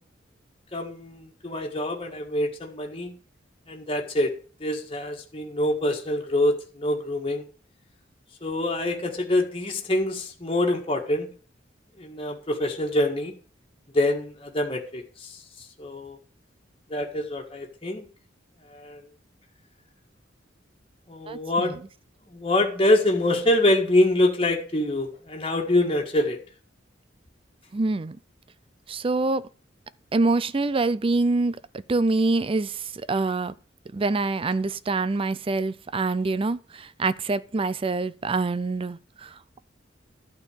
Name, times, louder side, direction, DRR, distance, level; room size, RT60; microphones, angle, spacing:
voice 1, 0.7-3.1 3.7-4.3 4.6-7.4 8.4-11.3 12.0-13.3 13.9-15.4 15.8-16.2 16.9-18.0 18.7-19.0 21.1-21.8 22.3-26.4, left 1 dB, 30° left, 1.7 m, -25 dB
voice 2, 21.3-21.8 27.7-28.2 28.9-29.5 30.1-31.6 31.9-33.5 33.9-39.6, right 3 dB, 30° right, 0.5 m, -25 dB
12.0 x 4.5 x 8.4 m
head